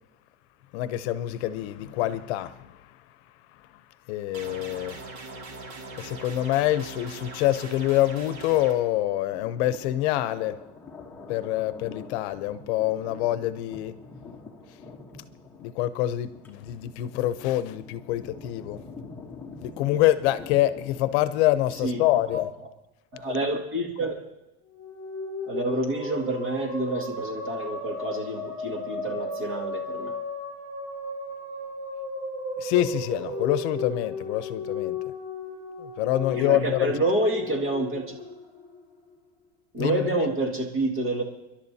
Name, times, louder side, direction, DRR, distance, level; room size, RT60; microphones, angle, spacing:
voice 1, 0.7-2.8 4.1-5.0 6.0-10.6 11.3-14.0 15.6-18.8 19.6-22.5 32.6-35.0 35.8-36.9 39.8-40.3, left 14 dB, 70° left, 0.7 m, -26 dB
sound 1, 4.3-8.7, right 2 dB, 60° right, 2.4 m, -41 dB
Thunder, 9.3-22.5, left 4 dB, 5° left, 1.1 m, -45 dB
voice 2, 23.1-24.2 25.5-30.1 36.3-38.1 39.7-41.2, right 2 dB, 40° right, 2.1 m, -28 dB
sound 2, 24.7-39.1, left 2 dB, 15° right, 3.8 m, -35 dB
29.5 x 11.5 x 2.8 m
cardioid pair, 170°, 34 cm